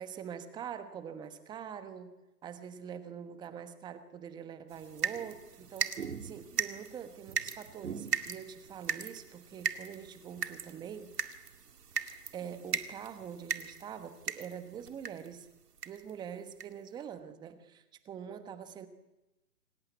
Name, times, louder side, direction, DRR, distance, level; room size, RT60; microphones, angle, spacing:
voice 1, 0.0-2.2 2.4-11.1 12.0-15.5 15.8-18.9, right 8 dB, 10° right, 11 dB, 1.2 m, -44 dB
sound 1, 4.7-15.3 15.8-16.1 16.6-16.7 17.0-17.1, right 7 dB, 75° right, 2.3 m, -38 dB
28.0 x 19.0 x 8.4 m, 1.0 s
hypercardioid pair, 145°, 48 cm